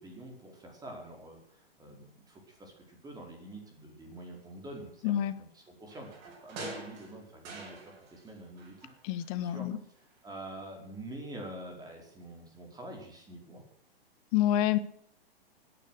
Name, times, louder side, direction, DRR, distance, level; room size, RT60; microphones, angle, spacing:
voice 1, 0.0-5.1 5.7-8.8 9.4-9.7 10.2-13.6, right 1 dB, 15° right, 1 dB, 4.8 m, -46 dB
voice 2, 5.0-5.3 9.0-9.7 14.3-14.8, left 12 dB, 35° left, 13 dB, 1.4 m, -27 dB
sound 1, 5.9-8.3 8.6-9.7 10.0-10.1, right 2 dB, 35° right, 8.0 m, -46 dB
18.0 x 10.5 x 6.4 m, 0.67 s
figure-of-eight pair, 120°, 30 cm